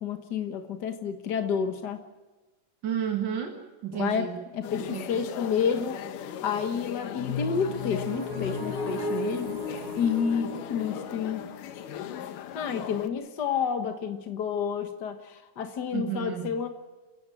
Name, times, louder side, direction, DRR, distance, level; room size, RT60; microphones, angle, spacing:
voice 1, 0.0-2.0 3.9-9.5 10.0-11.4 12.5-16.7, left 7 dB, 60° left, 7 dB, 1.0 m, -30 dB
voice 2, 2.8-4.4 4.8-5.2 15.9-16.5, right 9 dB, 40° right, 3 dB, 2.1 m, -32 dB
sound 1, 4.6-13.1, left 10 dB, 80° left, 2.7 m, -39 dB
sound 2, 7.2-12.9, left 2 dB, 15° right, 4.9 m, -35 dB
29.0 x 16.0 x 7.7 m, 1.2 s
omnidirectional pair, 3.8 m